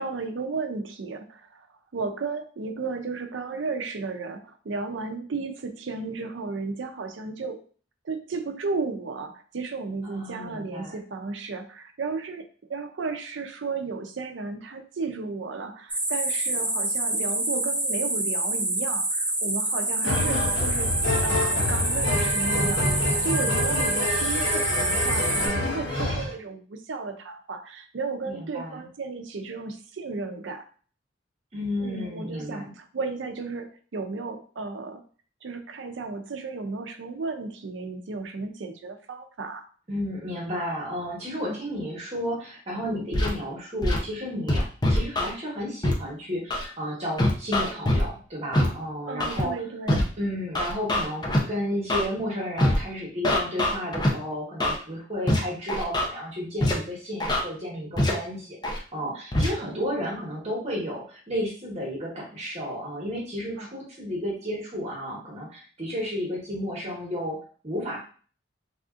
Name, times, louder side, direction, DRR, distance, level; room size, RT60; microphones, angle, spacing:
voice 1, 0.0-1.7 1.9-7.6 8.0-22.9 23.2-30.7 31.8-35.0 35.4-39.6 41.4-41.6 49.1-50.0 59.6-59.8 63.6-63.7, right 4 dB, 80° right, 7 dB, 0.5 m, -34 dB
voice 2, 10.1-11.0 28.2-28.9 31.5-32.7 39.9-49.5 50.2-68.0, equal, 35° right, -4 dB, 1.2 m, -32 dB
sound 1, 15.9-25.5, right 1 dB, 10° right, 0.8 m, -27 dB
sound 2, 20.0-26.3, left 1 dB, 80° left, 0.8 m, -27 dB
Scratching (performance technique), 43.1-43.3 43.8-44.0 44.5-45.3 45.8-45.9 46.5-46.6 47.2-48.0 48.5-48.7 49.2-49.4 49.9-50.0 50.5-51.4 51.9-52.0 52.6-52.8 53.2-54.1 54.6-54.8 55.3-55.4 55.7-56.1 56.6-56.7 57.2-57.4 58.0-58.1 58.6-58.8 59.3-59.5, left 1 dB, 20° left, 0.5 m, -23 dB
3.4 x 2.6 x 2.4 m, 0.41 s
head